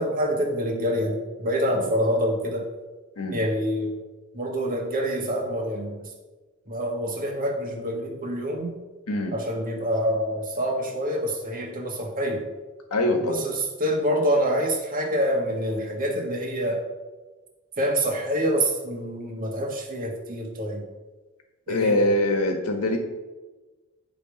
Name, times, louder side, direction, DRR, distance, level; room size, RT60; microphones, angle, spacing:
voice 1, 0.0-2.7 3.3-4.0 4.3-6.1 6.7-8.8 9.3-12.5 13.2-16.8 17.8-20.8 21.7-22.1, equal, 40° right, 1 dB, 1.7 m, -26 dB
voice 2, 12.9-13.4 21.7-23.0, left 1 dB, 90° left, 4 dB, 1.5 m, -23 dB
10.0 x 5.2 x 5.2 m, 1.2 s
head